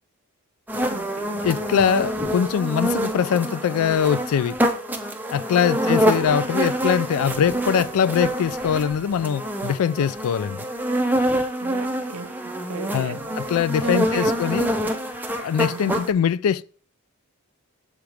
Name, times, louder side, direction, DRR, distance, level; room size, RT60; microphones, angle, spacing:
sound 1, 0.7-16.1, equal, 10° right, 0.5 m, -26 dB
voice 1, 0.9-1.5 5.8-6.4 11.6-13.4 13.8-14.6 15.7-16.1, right 5 dB, 75° right, 0.6 m, -36 dB
voice 2, 1.4-4.6 5.3-10.6 12.9-14.7 15.4-16.6, left 8 dB, 70° left, 0.3 m, -22 dB
7.1 x 3.1 x 4.9 m
head